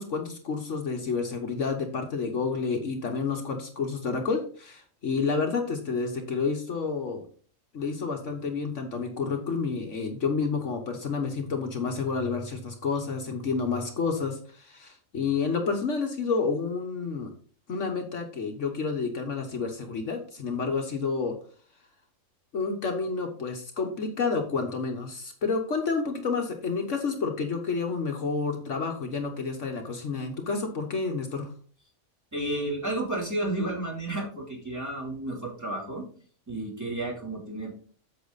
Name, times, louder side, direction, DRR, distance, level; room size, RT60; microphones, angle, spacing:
voice 1, 0.0-7.2 7.7-17.3 17.7-21.3 22.5-31.5, left 4 dB, 60° left, 4 dB, 1.4 m, -29 dB
voice 2, 32.3-36.1 36.5-37.7, right 1 dB, 10° right, -3 dB, 3.1 m, -32 dB
8.6 x 7.2 x 4.0 m, 0.43 s
omnidirectional pair, 1.5 m